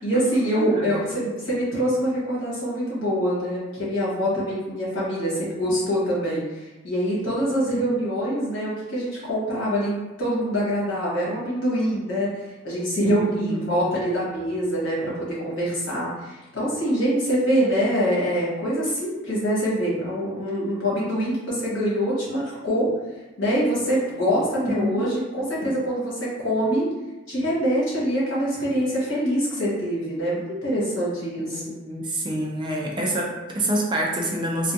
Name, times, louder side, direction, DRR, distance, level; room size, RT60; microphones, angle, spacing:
voice 1, 0.0-6.4 6.8-12.3 12.6-22.9 23.4-26.9 27.3-31.6, equal, 70° left, -8 dB, 1.3 m, -24 dB
voice 2, 0.5-1.0 13.0-13.8 24.6-25.1 31.4-34.7, right 1 dB, 25° right, -2 dB, 0.4 m, -27 dB
3.3 x 2.5 x 2.6 m, 1.1 s
head